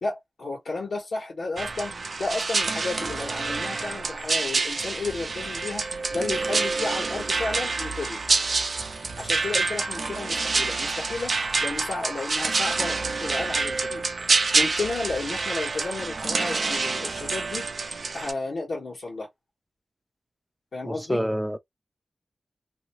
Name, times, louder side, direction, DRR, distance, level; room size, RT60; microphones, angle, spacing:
voice 1, 0.0-1.9 2.2-5.8 6.1-8.2 9.2-11.3 11.6-14.0 14.5-17.6 18.1-19.3 20.7-21.2, left 3 dB, 85° left, 1.3 m, -32 dB
sound 1, 1.6-18.3, right 3 dB, 60° right, 0.5 m, -27 dB
voice 2, 20.8-21.6, equal, 5° right, 0.5 m, -27 dB
2.7 x 2.2 x 3.0 m
wide cardioid pair, 65°, 0 cm